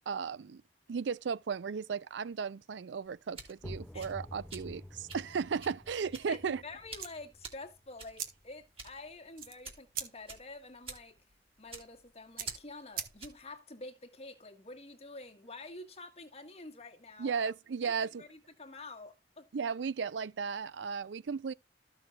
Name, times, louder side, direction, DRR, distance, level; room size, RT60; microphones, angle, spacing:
voice 1, 0.1-0.6 0.9-6.6 17.2-18.2 19.5-21.5, right 6 dB, 90° right, 0.4 m, -35 dB
sound 1, 3.0-13.5, right 4 dB, 35° right, 2.4 m, -50 dB
sound 2, 3.6-9.1, left 1 dB, 5° left, 0.4 m, -49 dB
voice 2, 6.3-11.2 11.6-17.5 17.8-19.5, left 2 dB, 35° left, 1.6 m, -48 dB
sound 3, 7.0-13.6, right 8 dB, 55° right, 1.4 m, -46 dB
14.0 x 6.1 x 2.4 m
head